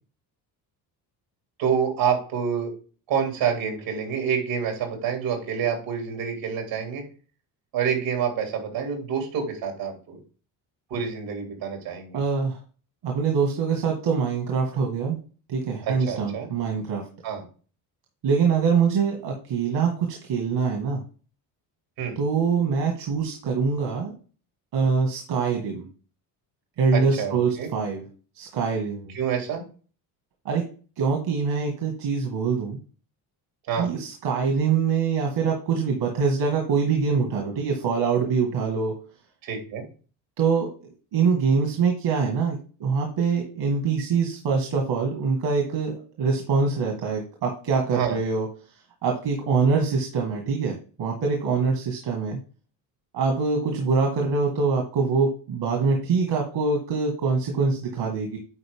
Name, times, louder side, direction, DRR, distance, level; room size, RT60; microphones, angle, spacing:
voice 1, 1.6-2.7 3.1-7.0 7.7-10.2 10.9-12.2 15.8-16.5 17.2-17.4 22.0-22.2 26.9-27.7 29.1-29.6 33.7-33.9 39.4-39.8 47.9-48.2, right 7 dB, 90° right, 3 dB, 3.0 m, -27 dB
voice 2, 12.1-12.6 13.0-15.2 15.5-17.0 18.2-21.0 22.2-24.1 24.7-25.9 26.8-28.0 28.4-29.2 30.5-30.6 31.0-32.8 33.8-38.9 40.4-48.5 49.0-52.4 53.1-58.4, right 5 dB, 75° right, 1 dB, 2.0 m, -24 dB
9.7 x 4.5 x 3.7 m, 0.38 s
cardioid pair, 90°, 43 cm